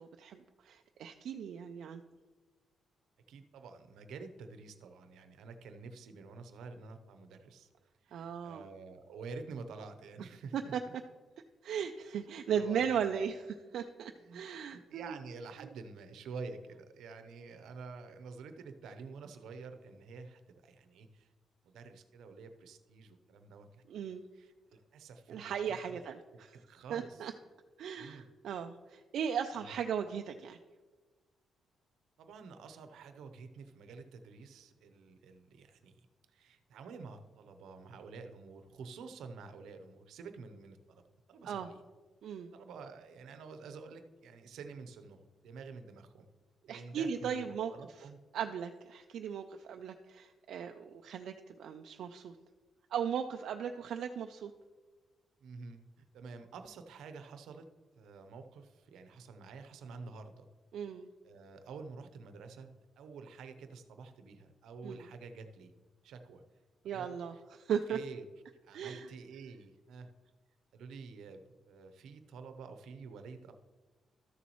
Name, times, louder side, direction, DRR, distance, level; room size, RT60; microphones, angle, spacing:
voice 1, 0.0-2.0 8.1-8.7 10.5-10.8 11.6-15.1 23.9-24.2 25.3-26.5 26.9-27.3 27.8-30.6 41.4-41.7 42.2-42.5 46.7-47.7 48.3-51.3 51.6-52.4 52.9-54.5 60.7-61.1 64.8-65.0 66.8-68.0 68.7-69.1, right 8 dB, 70° right, 5 dB, 0.4 m, -37 dB
voice 2, 3.3-7.7 8.0-10.9 12.1-12.2 12.5-13.4 14.1-14.4 14.7-21.3 21.6-23.8 24.3-26.0 26.5-27.3 28.0-28.3 32.2-36.1 36.3-41.8 42.5-46.3 46.7-48.2 55.4-60.5 60.9-61.0 61.2-65.7 66.0-66.4 66.8-67.4 67.9-68.3 68.6-70.1 70.7-73.5, right 4 dB, 85° right, 8 dB, 0.8 m, -49 dB
13.0 x 7.0 x 3.0 m, 1.3 s
cardioid pair, 135°, 0 cm